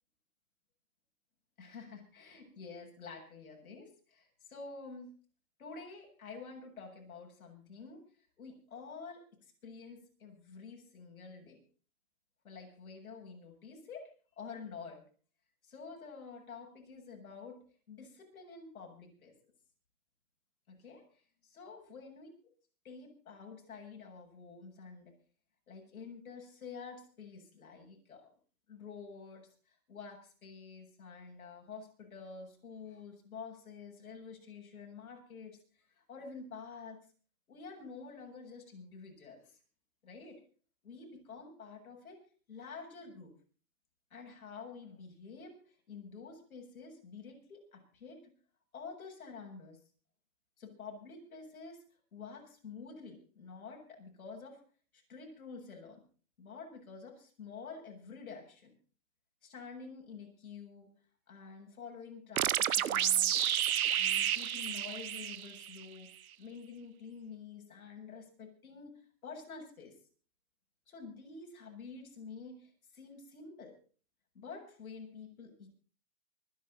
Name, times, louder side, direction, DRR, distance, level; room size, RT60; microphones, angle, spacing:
voice 1, 1.6-5.1 5.6-8.0 8.4-11.6 12.4-14.1 14.4-15.0 15.6-19.3 20.7-21.0 21.4-22.3 22.8-25.2 25.7-28.3 28.7-37.0 37.5-39.6 40.0-40.4 40.8-42.2 42.5-43.3 44.1-48.3 48.7-49.8 50.6-51.8 52.1-54.6 54.9-56.0 56.4-58.7 59.4-60.9 61.3-63.4 63.9-66.1 66.4-70.0 70.9-73.8 74.3-75.7, left 5 dB, 80° left, 1 dB, 8.0 m, -49 dB
sound 1, 62.4-65.8, right 10 dB, 85° right, 1.1 m, -30 dB
25.0 x 11.0 x 4.3 m, 0.40 s
hypercardioid pair, 170°, 42 cm